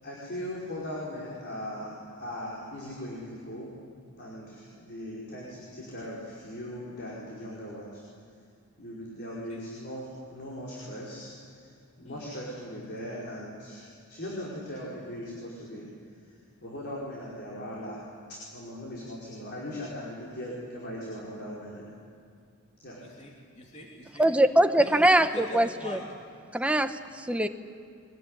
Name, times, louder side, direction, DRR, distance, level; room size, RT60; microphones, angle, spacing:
voice 1, 0.0-3.7 4.2-8.0 8.8-11.7 12.0-15.9 16.6-18.1 18.5-21.9 22.8-23.0, equal, 50° left, -5 dB, 5.2 m, -39 dB
voice 2, 23.2-24.3 24.8-26.1 26.6-26.7, left 1 dB, 35° left, -1 dB, 3.0 m, -43 dB
voice 3, 24.2-26.0 26.5-27.0 27.3-27.5, right 1 dB, 5° right, 7 dB, 0.9 m, -22 dB
23.0 x 21.0 x 10.0 m, 2.3 s
head